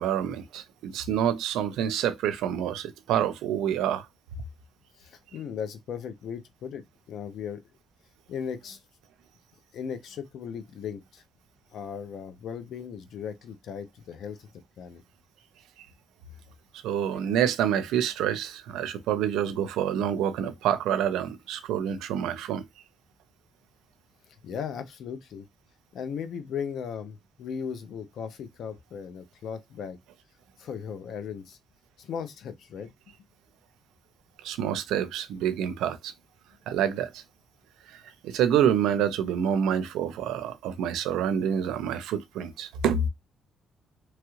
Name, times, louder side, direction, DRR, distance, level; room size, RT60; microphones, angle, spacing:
voice 1, 0.0-4.1 16.8-22.6 34.4-36.1 36.7-37.2 37.9-43.1, right 9 dB, 90° right, 0.5 m, -27 dB
voice 2, 5.0-7.6 8.3-8.8 9.7-11.2 11.7-14.5 14.8-15.0 24.4-25.5 25.9-30.0 30.6-31.6 32.0-32.9, left 7 dB, 70° left, 0.6 m, -37 dB
3.0 x 2.4 x 3.0 m
cardioid pair, 90°, 0 cm